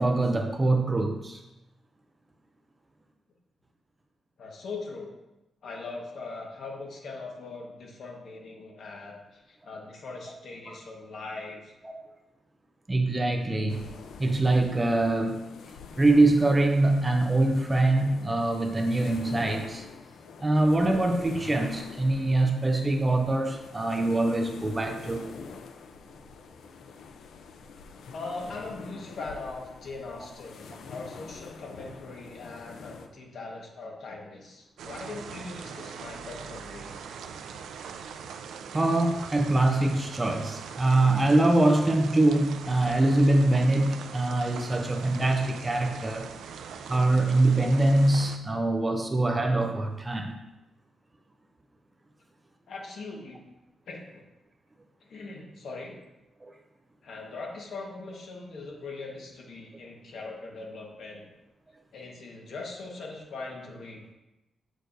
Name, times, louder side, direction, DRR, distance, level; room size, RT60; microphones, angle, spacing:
voice 1, 0.0-1.4 10.7-10.8 11.8-12.1 12.9-13.9 14.2-15.5 16.0-19.9 20.4-25.3 38.7-46.3 46.9-50.3 56.4-56.5, right 2 dB, 15° right, 4 dB, 0.4 m, -24 dB
voice 2, 4.4-5.1 5.6-11.7 28.1-37.0 52.7-53.4 53.9-54.2 55.0-55.9 57.0-61.3 61.9-64.0, left 3 dB, 55° left, 0 dB, 1.4 m, -40 dB
sound 1, 13.7-33.1, left 5 dB, 75° left, 0.5 m, -45 dB
sound 2, 34.8-48.4, right 6 dB, 85° right, 0.4 m, -41 dB
7.8 x 6.4 x 2.6 m, 0.97 s
wide cardioid pair, 180°, 0 cm